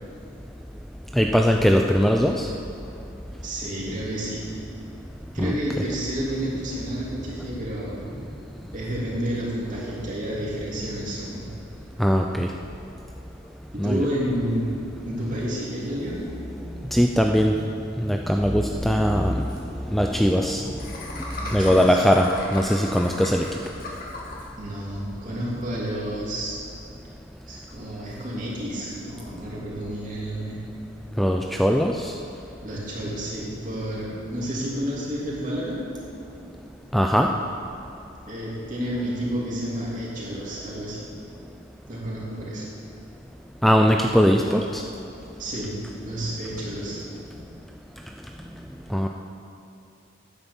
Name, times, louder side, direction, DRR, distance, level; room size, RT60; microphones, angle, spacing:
voice 1, 1.1-2.5 5.4-5.6 12.0-12.5 13.8-14.1 16.9-17.6 18.0-20.6 21.5-23.5 31.2-32.1 36.9-37.3 43.6-44.8 48.9-49.1, equal, ahead, 2 dB, 0.4 m, -20 dB
voice 2, 3.4-4.5 5.3-8.0 8.7-11.5 13.7-14.7 15.0-16.2 21.4-22.0 24.6-26.5 26.8-26.9 27.5-30.6 32.6-35.8 38.2-41.1 41.9-42.7 45.4-45.8 46.0-47.0, right 1 dB, 40° right, -5 dB, 3.0 m, -30 dB
Laughter, 18.8-18.9 19.1-19.2 19.4-19.6 20.8-24.5, left 2 dB, 45° left, 2.0 m, -36 dB
10.0 x 9.3 x 7.1 m, 2.8 s
head